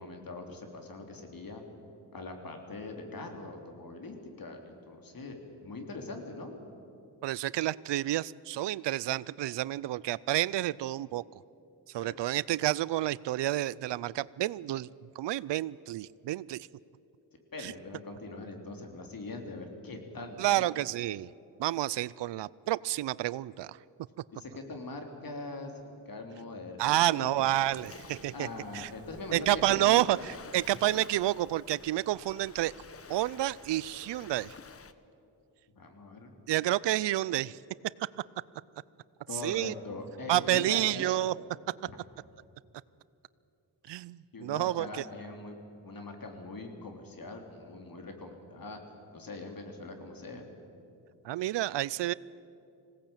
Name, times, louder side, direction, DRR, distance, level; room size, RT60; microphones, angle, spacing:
voice 1, 0.0-1.6 2.1-6.6 12.0-12.3 17.5-20.7 24.3-27.9 28.3-30.0 35.8-36.3 39.3-41.1 41.8-42.0 44.3-45.6 45.8-48.8 49.1-50.5, left 2 dB, 50° left, 4 dB, 3.5 m, -42 dB
voice 2, 7.2-11.2 11.9-14.9 15.2-16.7 17.6-17.7 20.4-21.3 21.6-23.8 26.8-28.5 28.7-28.9 29.3-32.7 33.1-34.5 36.5-37.6 39.4-39.7 40.3-41.3 43.9-45.0 51.2-52.1, right 14 dB, 75° right, 21 dB, 0.5 m, -29 dB
Waves surf, 27.4-34.9, left 5 dB, 30° left, 1.0 m, -51 dB
20.0 x 17.5 x 8.9 m, 2.6 s
cardioid pair, 65°, 43 cm